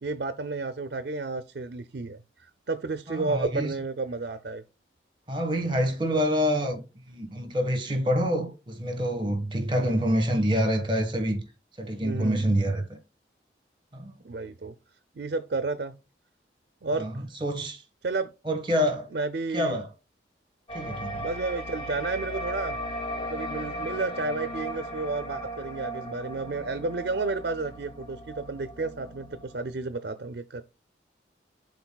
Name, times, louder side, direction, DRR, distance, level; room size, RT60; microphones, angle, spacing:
voice 1, 0.0-4.6 9.7-10.1 12.0-12.7 14.2-14.7 15.2-15.9 16.8-17.1 18.0-18.3 19.1-19.8 21.2-22.8 23.2-30.6, right 3 dB, 60° right, 0.5 m, -32 dB
voice 2, 3.1-3.7 5.3-6.8 7.1-11.4 11.8-13.0 13.9-14.1 16.9-17.1 17.4-17.8 18.4-19.1 19.5-19.9 20.7-21.2, equal, 25° right, 1.3 m, -26 dB
sound 1, 20.7-29.7, equal, 30° left, 1.2 m, -37 dB
11.5 x 3.9 x 2.3 m
head